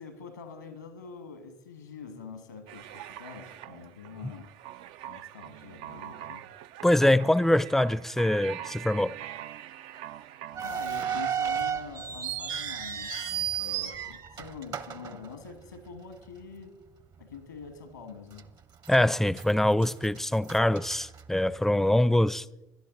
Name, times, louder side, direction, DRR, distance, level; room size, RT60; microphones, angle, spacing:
voice 1, 0.0-4.5 5.1-6.4 10.6-16.8 17.2-18.5, left 5 dB, 90° left, 1.5 m, -45 dB
sound 1, 2.7-11.3, right 12 dB, 65° right, 0.4 m, -44 dB
voice 2, 6.8-9.2 18.9-22.5, left 1 dB, 5° left, 0.5 m, -24 dB
sound 2, 10.5-15.9 16.2-16.3 17.0-17.2 17.7-17.8 18.4-19.0 19.3-21.8, right 8 dB, 45° right, 0.9 m, -34 dB
18.0 x 11.5 x 3.9 m
hypercardioid pair, 55°, 9 cm